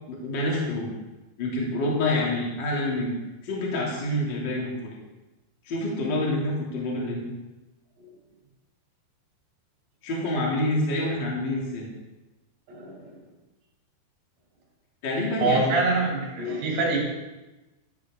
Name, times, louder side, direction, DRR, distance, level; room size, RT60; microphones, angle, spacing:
voice 1, 0.1-0.9 1.4-3.1 3.4-4.7 5.6-7.3 10.0-11.9 15.0-15.8, left 1 dB, 30° left, -3 dB, 2.4 m, -27 dB
voice 2, 12.7-13.1 15.4-17.0, right 3 dB, 60° right, -3 dB, 4.8 m, -25 dB
14.0 x 12.0 x 3.8 m, 1.1 s
omnidirectional pair, 5.7 m